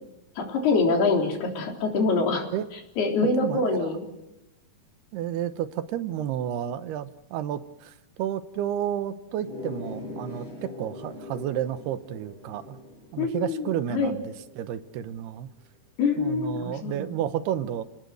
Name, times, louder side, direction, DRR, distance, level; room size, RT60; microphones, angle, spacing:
voice 1, 0.4-2.5 2.7-4.0 13.2-14.1 16.0-17.2, left 4 dB, 75° left, 2 dB, 5.7 m, -25 dB
voice 2, 3.4-3.9 5.1-12.8 13.1-14.2 14.6-15.5 16.2-17.9, right 10 dB, 85° right, 12 dB, 3.1 m, -31 dB
sound 1, 9.4-14.7, left 2 dB, 40° left, 9.2 m, -42 dB
30.0 x 19.0 x 8.0 m, 0.92 s
omnidirectional pair, 4.5 m